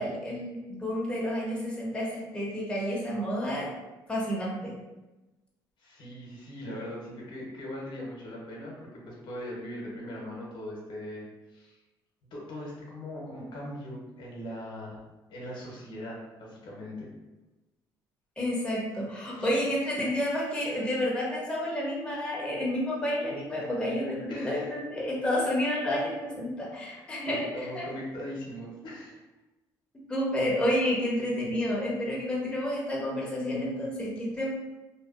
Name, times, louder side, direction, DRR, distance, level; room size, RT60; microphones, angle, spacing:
voice 1, 0.0-3.7 4.1-4.7 18.4-27.5 27.7-27.8 30.1-34.5, left 1 dB, 10° left, -5 dB, 0.9 m, -30 dB
voice 2, 5.8-11.2 11.5-11.8 12.3-15.0 15.3-17.1 19.4-19.5 24.3-24.7 26.8-29.2, left 1 dB, 65° left, -3 dB, 0.8 m, -40 dB
2.6 x 2.3 x 2.4 m, 1.1 s
supercardioid pair, 80°, 9 cm